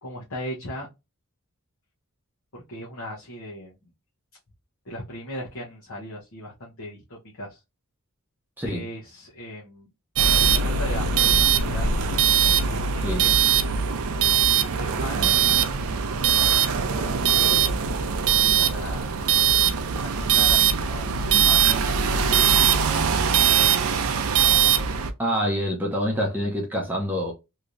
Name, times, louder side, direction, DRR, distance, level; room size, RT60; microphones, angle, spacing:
voice 1, 0.0-0.9 2.5-3.9 4.8-7.6 8.6-9.9 10.6-11.9 12.6-13.6 14.7-15.7 16.5-17.5 18.3-19.1 20.1-22.6 23.8-24.4, equal, 65° left, 0.9 m, -38 dB
sound 1, 10.2-25.1, right 7 dB, 70° right, 0.5 m, -21 dB
voice 2, 25.2-27.3, equal, 10° right, 0.7 m, -26 dB
3.2 x 2.8 x 2.5 m
head